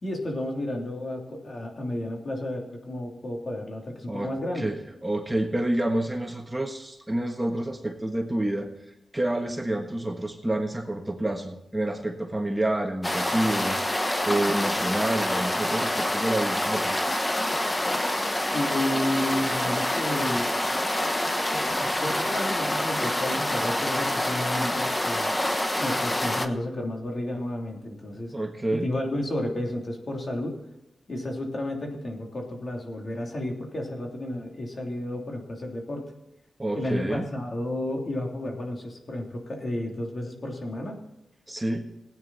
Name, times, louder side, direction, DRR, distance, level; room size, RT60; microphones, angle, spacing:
voice 1, 0.0-4.7 18.5-20.5 21.3-25.3 25.8-28.3 28.8-30.6 31.1-36.1 36.7-41.0, left 1 dB, 45° left, 1 dB, 3.1 m, -32 dB
voice 2, 5.0-8.7 9.1-17.0 28.3-28.9 36.6-37.2 41.5-41.8, right 1 dB, 15° right, 3 dB, 1.5 m, -28 dB
sound 1, 13.0-26.5, left 1 dB, 15° left, 1.2 m, -27 dB
18.0 x 9.3 x 4.2 m, 0.91 s
wide cardioid pair, 90°, 0 cm